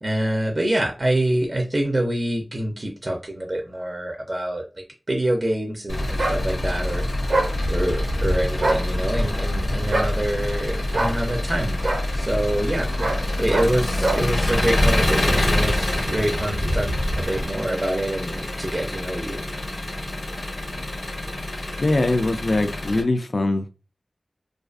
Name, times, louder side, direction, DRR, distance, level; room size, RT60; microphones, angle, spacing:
voice 1, 0.0-4.6 5.1-7.0 7.7-11.8 12.1-12.9 13.4-19.4, right 1 dB, 35° right, 0.5 m, -26 dB
Engine, 5.9-23.0, left 1 dB, 90° left, 0.7 m, -25 dB
sound 1, 6.2-6.4 7.3-7.5 8.5-8.8 9.9-10.1 10.9-11.2 11.8-12.0 13.0-13.2 13.5-13.7 14.0-14.2, right 2 dB, 85° right, 0.6 m, -23 dB
voice 2, 21.8-23.7, left 2 dB, 60° left, 0.3 m, -22 dB
2.4 x 2.4 x 2.3 m
wide cardioid pair, 60°, 0 cm